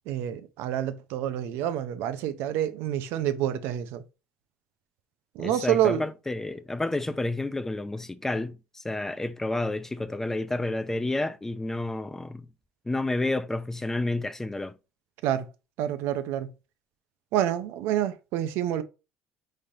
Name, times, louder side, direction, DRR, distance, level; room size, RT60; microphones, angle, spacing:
voice 1, 0.1-4.0 5.3-6.0 15.2-15.5 15.8-16.5 17.3-18.8, right 11 dB, 70° right, 0.5 m, -28 dB
voice 2, 5.4-12.5 12.9-14.8, left 2 dB, 10° left, 0.4 m, -30 dB
3.8 x 3.2 x 2.7 m
supercardioid pair, 100°, 4 cm